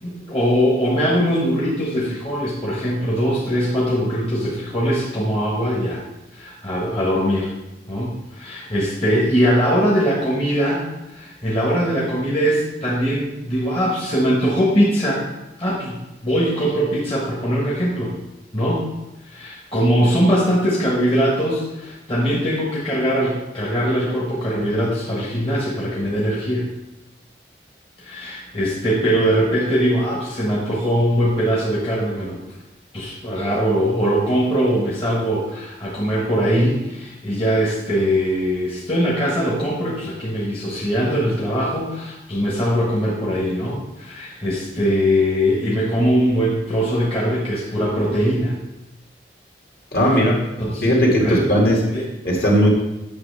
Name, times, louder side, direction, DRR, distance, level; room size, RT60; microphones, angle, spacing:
voice 1, 0.0-6.0 6.3-7.5 7.9-15.3 15.6-18.2 18.5-18.8 19.3-26.7 28.0-32.4 32.9-48.6 50.6-50.9 51.1-51.6 51.9-52.4, equal, 30° left, -5 dB, 1.4 m, -21 dB
voice 2, 49.9-50.4 50.8-51.8 52.2-52.7, equal, 55° left, -2 dB, 2.2 m, -17 dB
8.9 x 6.7 x 3.4 m, 0.94 s
head